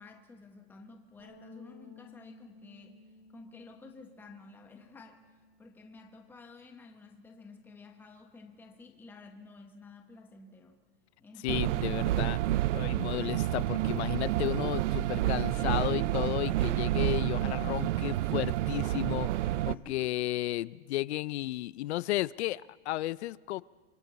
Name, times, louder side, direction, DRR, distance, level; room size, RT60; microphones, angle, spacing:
voice 1, 0.0-5.2 5.6-10.8 11.2-12.4 19.7-20.3, left 3 dB, 5° left, 4 dB, 1.0 m, -52 dB
sound 1, 1.2-5.8 6.0-7.4, left 4 dB, 30° right, 6.2 m, -57 dB
voice 2, 11.4-12.4 12.7-23.6, left 16 dB, 70° left, 20 dB, 0.5 m, -33 dB
sound 2, 11.5-19.7, right 14 dB, 90° right, 0.6 m, -29 dB
25.5 x 25.0 x 4.1 m, 1.4 s
supercardioid pair, 160°, 35 cm